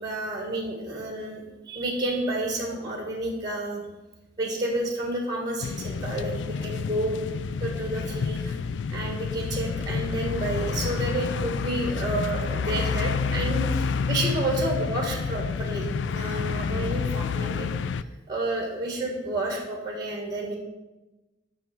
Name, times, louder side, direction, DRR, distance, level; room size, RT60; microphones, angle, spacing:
voice 1, 0.0-3.8 4.4-7.2 7.6-8.6 8.9-17.7 18.0-20.6, right 1 dB, 20° right, 1 dB, 1.8 m, -30 dB
sound 1, 5.6-18.0, left 5 dB, 70° left, 0.4 m, -29 dB
9.2 x 6.5 x 6.0 m, 1.1 s
head